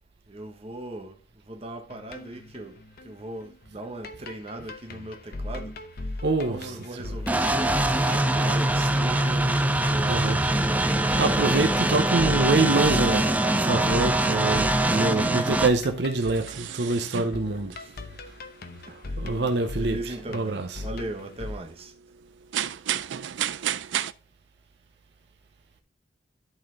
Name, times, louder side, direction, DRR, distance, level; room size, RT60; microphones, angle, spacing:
voice 1, 0.3-1.2 1.5-2.8 3.0-5.7 6.4-10.4 14.6-15.1 17.8-17.9 18.9-19.2 19.8-21.9, right 1 dB, 35° right, 1.1 m, -38 dB
sound 1, 1.9-21.6, left 2 dB, 55° left, 0.8 m, -39 dB
voice 2, 6.2-7.2 10.0-10.4 10.8-17.7 18.3-18.4 18.9-20.9, right 3 dB, 65° right, 0.8 m, -26 dB
sound 2, 7.3-15.7, right 1 dB, 10° right, 0.5 m, -23 dB
sound 3, 16.2-24.1, right 11 dB, 80° right, 0.4 m, -34 dB
11.0 x 4.3 x 3.8 m
head